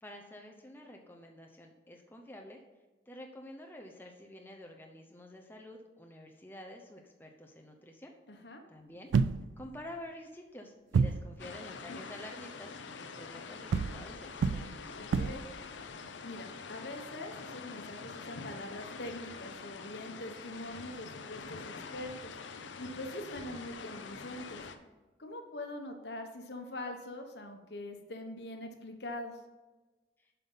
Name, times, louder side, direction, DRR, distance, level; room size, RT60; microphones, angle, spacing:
voice 1, 0.0-2.6 3.1-8.1 8.7-9.1 9.6-15.0, left 1 dB, 10° left, 2 dB, 0.6 m, -49 dB
voice 2, 8.3-8.6 15.0-15.4 16.2-22.4 22.8-24.6 25.2-29.4, left 1 dB, 70° left, 5 dB, 1.1 m, -43 dB
sound 1, 9.1-9.8 10.9-11.4 13.7-15.6, right 5 dB, 85° right, 0.3 m, -29 dB
sound 2, 11.4-24.8, left 4 dB, 90° left, 0.7 m, -45 dB
7.6 x 5.7 x 5.5 m, 1.2 s
head